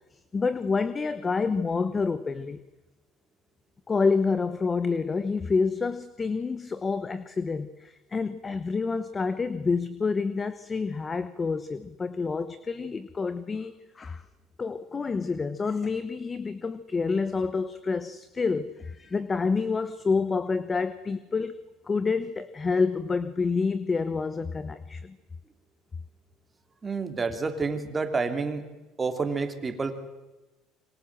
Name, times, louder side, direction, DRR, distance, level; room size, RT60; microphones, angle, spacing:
voice 1, 0.3-2.6 3.9-14.2 14.6-25.2, left 4 dB, 20° left, 14 dB, 1.1 m, -28 dB
voice 2, 26.8-28.6 29.0-29.9, right 4 dB, 20° right, 6 dB, 3.3 m, -29 dB
27.0 x 24.0 x 7.6 m, 1.1 s
cardioid pair, 120°, 0 cm